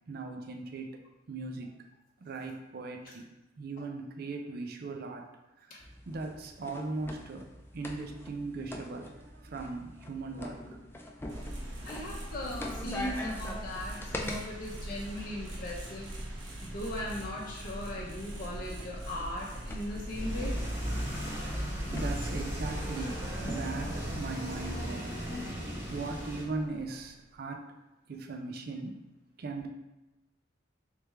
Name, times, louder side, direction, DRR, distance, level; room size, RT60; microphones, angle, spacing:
voice 1, 0.1-0.9 1.3-1.7 2.2-3.3 3.6-5.2 6.1-7.5 7.7-10.6 21.9-23.1 23.4-25.1 25.9-27.6 28.1-29.0 29.4-29.7, right 3 dB, 55° right, 3 dB, 0.4 m, -38 dB
sound 1, 5.8-14.4 15.7-23.9, left 1 dB, 10° left, 0.3 m, -44 dB
sound 2, 11.3-27.3, right 1 dB, 80° right, 0.9 m, -42 dB
voice 2, 11.8-16.1 16.6-20.6, left 1 dB, 50° left, -4 dB, 0.7 m, -38 dB
sound 3, 20.1-26.4, equal, 15° right, 1.0 m, -36 dB
3.3 x 3.3 x 3.2 m, 1.0 s
head